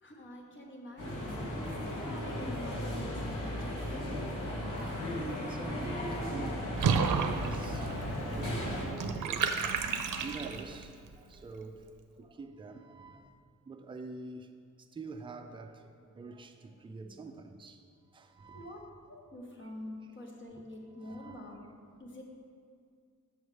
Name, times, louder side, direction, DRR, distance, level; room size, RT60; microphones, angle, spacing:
voice 1, 0.0-4.0 11.8-11.9 18.5-18.8 19.1-21.7 22.0-22.2, left 1 dB, 40° left, 1.0 m, -47 dB
sound 1, 1.0-8.9, left 1 dB, 80° left, 1.6 m, -36 dB
voice 2, 2.0-2.3 4.3-9.7 10.1-11.9 12.2-13.3 13.7-14.5 14.9-17.8 18.1-18.8 21.0-21.6, right 3 dB, 15° right, 0.3 m, -46 dB
Water / Bathtub (filling or washing), 6.8-10.8, right 6 dB, 75° right, 0.5 m, -32 dB
6.5 x 6.3 x 3.2 m
wide cardioid pair, 110°, 31 cm